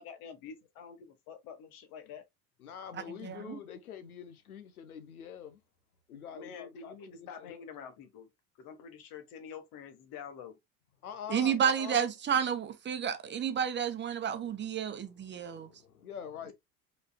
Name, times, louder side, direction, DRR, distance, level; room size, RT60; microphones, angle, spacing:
voice 1, 0.0-2.2 6.3-8.3 8.6-10.6, left 7 dB, 50° left, 1.5 m, -47 dB
voice 2, 2.6-5.6 6.1-7.6 11.0-12.1 14.4-14.5 14.9-16.5, left 8 dB, 75° left, 1.0 m, -45 dB
voice 3, 3.2-3.6 11.3-15.7, right 8 dB, 25° right, 1.0 m, -31 dB
5.0 x 4.4 x 2.3 m
figure-of-eight pair, 70°, 44 cm